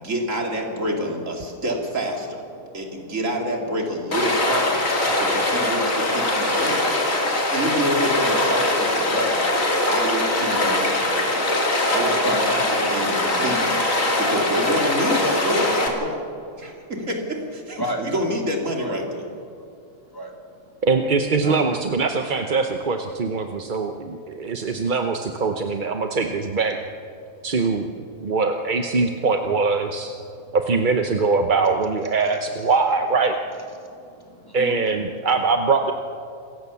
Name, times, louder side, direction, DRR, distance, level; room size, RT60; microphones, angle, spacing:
voice 1, 0.0-2.4 2.7-4.8 5.2-6.9 7.5-9.4 9.9-11.4 11.9-12.6 12.9-16.2 16.6-19.2, equal, 60° right, 1 dB, 3.3 m, -27 dB
Stream, 4.1-15.9, left 1 dB, 65° left, 3.0 m, -22 dB
voice 2, 7.2-7.5 9.2-10.2 10.6-11.9 12.2-12.4 17.8-18.1 18.8-18.9 20.1-20.4 21.4-21.6 30.4-30.6 33.8-34.7, equal, 15° left, 1 dB, 2.3 m, -34 dB
voice 3, 20.8-26.8 27.4-30.1 30.5-33.3 34.5-35.9, right 4 dB, 40° right, 5 dB, 0.9 m, -22 dB
27.0 x 15.5 x 7.1 m, 2.5 s
omnidirectional pair, 1.5 m